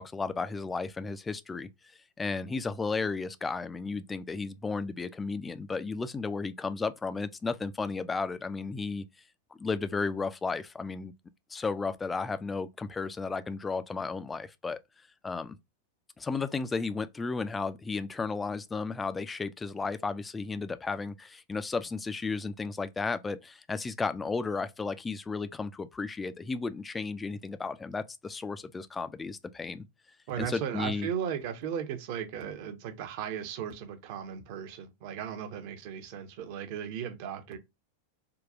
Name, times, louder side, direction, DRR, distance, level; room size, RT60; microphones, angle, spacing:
voice 1, 0.0-9.1 9.6-11.1 11.5-14.8 15.2-15.6 16.2-29.8 30.4-31.1, left 4 dB, 15° left, 0.3 m, -34 dB
voice 2, 30.3-37.6, right 8 dB, 45° right, 0.6 m, -36 dB
3.7 x 2.3 x 2.4 m
figure-of-eight pair, 90°, 0 cm